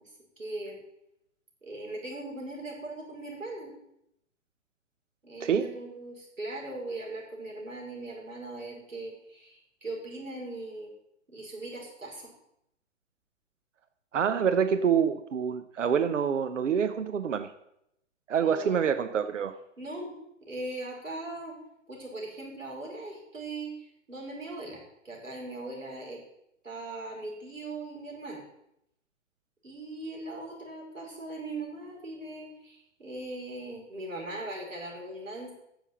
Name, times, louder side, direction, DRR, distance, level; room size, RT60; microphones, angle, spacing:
voice 1, 0.4-0.8 1.6-3.7 5.2-10.9 11.3-12.3 18.4-18.8 19.8-21.6 21.9-26.2 26.6-28.4 29.6-35.5, right 2 dB, 90° right, -1 dB, 5.3 m, -39 dB
voice 2, 5.4-5.7 14.1-17.5 18.3-19.6, right 7 dB, 70° right, 9 dB, 1.0 m, -26 dB
10.0 x 7.0 x 8.1 m, 0.79 s
figure-of-eight pair, 120°, 38 cm